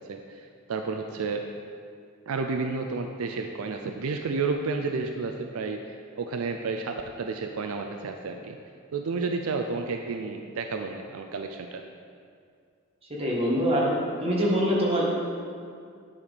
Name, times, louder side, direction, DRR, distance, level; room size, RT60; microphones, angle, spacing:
voice 1, 0.1-1.4 2.3-8.6 8.9-11.8, right 4 dB, 80° right, 4 dB, 0.5 m, -31 dB
voice 2, 13.1-13.9 14.2-15.1, equal, 30° right, -4 dB, 1.6 m, -24 dB
9.9 x 5.1 x 4.1 m, 2.2 s
head